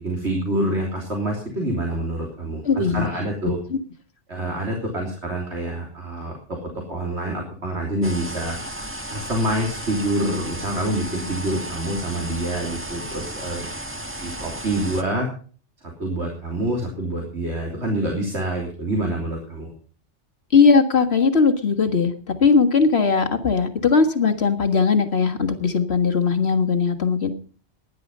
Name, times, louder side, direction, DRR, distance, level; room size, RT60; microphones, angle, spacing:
voice 1, 0.0-3.6 4.3-6.6 6.9-8.6 9.1-13.7 14.2-15.3 16.0-19.7, right 1 dB, 75° right, 0 dB, 3.5 m, -26 dB
voice 2, 2.7-3.1 20.5-27.3, left 5 dB, 65° left, 7 dB, 1.9 m, -19 dB
sound 1, 8.0-15.0, right 1 dB, 10° right, 1.4 m, -34 dB
16.5 x 10.5 x 5.4 m, 0.42 s
omnidirectional pair, 1.2 m